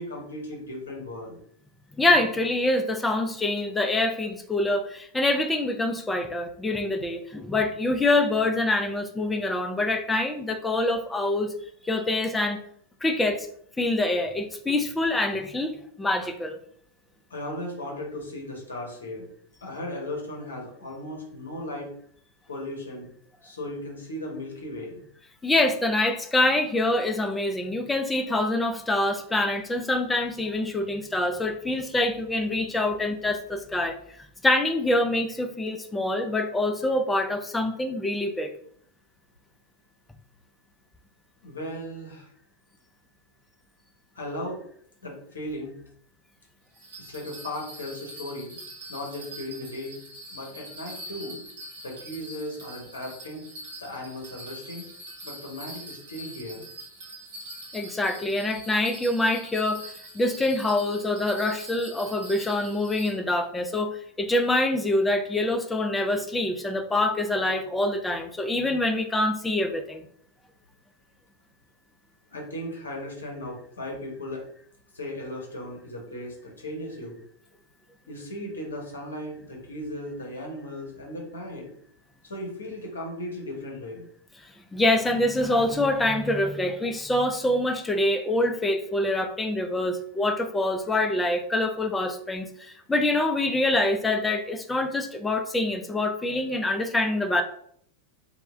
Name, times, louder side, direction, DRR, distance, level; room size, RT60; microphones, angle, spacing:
voice 1, 0.0-1.4 17.3-19.3 19.6-21.9 22.5-23.1 23.4-25.0 41.4-42.3 44.1-44.6 45.0-45.7 47.0-48.6 48.9-50.0 50.3-51.4 51.8-53.4 53.8-54.8 55.2-56.7 72.3-74.4 74.9-77.2 78.1-81.7 82.2-84.1, left 1 dB, 70° left, -1 dB, 0.9 m, -36 dB
voice 2, 2.0-11.5 11.8-12.6 13.0-13.5 13.8-16.6 25.4-34.0 34.4-38.5 57.7-59.8 60.1-70.1 84.7-97.4, left 2 dB, 10° left, 6 dB, 0.3 m, -25 dB
Bell, 46.7-63.1, right 1 dB, 65° right, 0.8 m, -43 dB
2.1 x 2.1 x 3.3 m, 0.66 s
figure-of-eight pair, 90°, 0 cm